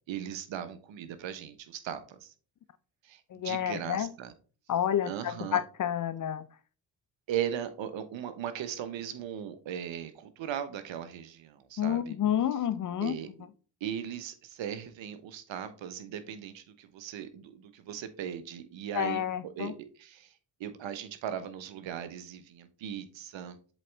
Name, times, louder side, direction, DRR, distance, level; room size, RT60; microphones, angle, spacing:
voice 1, 0.1-2.3 3.0-4.3 5.0-5.6 7.3-12.1 13.0-13.3 13.8-20.3 20.6-23.6, right 9 dB, 65° right, 1.1 m, -38 dB
voice 2, 3.3-4.1 4.7-6.4 11.8-13.2 18.9-19.7, left 10 dB, 40° left, 0.6 m, -29 dB
7.6 x 4.0 x 3.3 m
hypercardioid pair, 55°, 49 cm